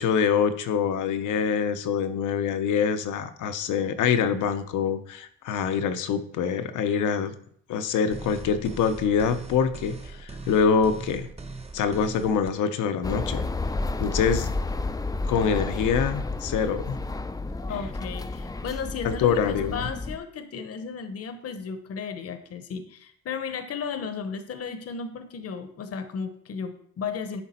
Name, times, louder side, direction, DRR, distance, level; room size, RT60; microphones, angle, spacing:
voice 1, 0.0-7.3 7.7-11.3 11.7-13.5 14.0-14.6 15.3-17.0 19.0-19.8, left 6 dB, 80° left, 10 dB, 0.8 m, -25 dB
sound 1, 8.1-12.5, right 3 dB, 20° right, 0.9 m, -40 dB
sound 2, 13.0-20.2, left 3 dB, 10° left, 0.4 m, -31 dB
voice 2, 17.7-27.4, left 6 dB, 50° left, 9 dB, 0.9 m, -34 dB
10.5 x 3.9 x 4.3 m, 0.63 s
cardioid pair, 90°, 30 cm